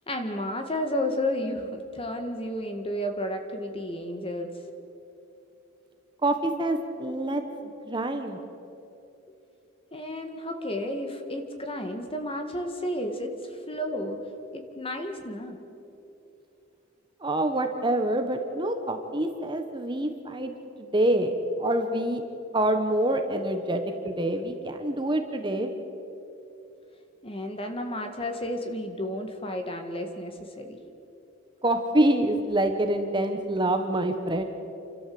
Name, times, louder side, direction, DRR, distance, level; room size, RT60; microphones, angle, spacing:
voice 1, 0.1-4.5 9.9-14.2 14.5-15.6 27.2-30.8, left 1 dB, 25° left, 5 dB, 1.8 m, -32 dB
voice 2, 6.2-7.4 7.9-8.4 17.2-20.5 20.8-21.3 21.6-22.2 22.5-25.7 31.6-34.4, right 1 dB, 25° right, 6 dB, 1.2 m, -26 dB
28.5 x 13.0 x 7.8 m, 2.9 s
head